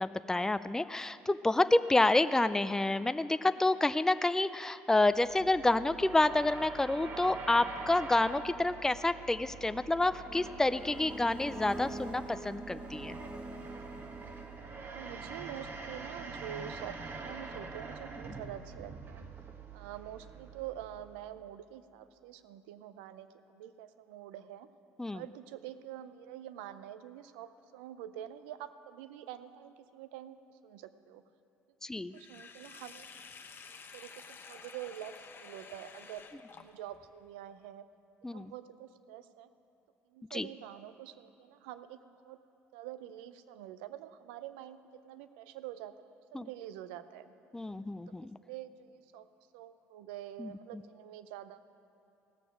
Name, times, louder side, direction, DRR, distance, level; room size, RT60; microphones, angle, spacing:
voice 1, 0.0-13.2 25.0-25.2 31.8-32.1 38.2-38.5 40.3-40.5 46.3-46.5 47.5-48.4 50.4-50.5, left 2 dB, 10° left, 13 dB, 0.4 m, -29 dB
sound 1, 5.0-21.3, right 4 dB, 40° right, 1.2 m, -45 dB
sound 2, 10.3-14.9, right 1 dB, 20° right, 1.0 m, -45 dB
voice 2, 14.8-19.3 19.7-24.7 25.1-30.4 30.6-31.2 32.1-33.1 33.7-37.9 38.3-39.5 40.1-42.4 42.7-45.9 46.3-47.3 48.4-49.3 49.5-51.6, right 11 dB, 90° right, 13 dB, 0.4 m, -46 dB
Sink (filling or washing), 32.1-37.1, left 5 dB, 40° left, 0.8 m, -51 dB
16.5 x 6.9 x 6.1 m, 2.7 s
supercardioid pair, 70°, 6 cm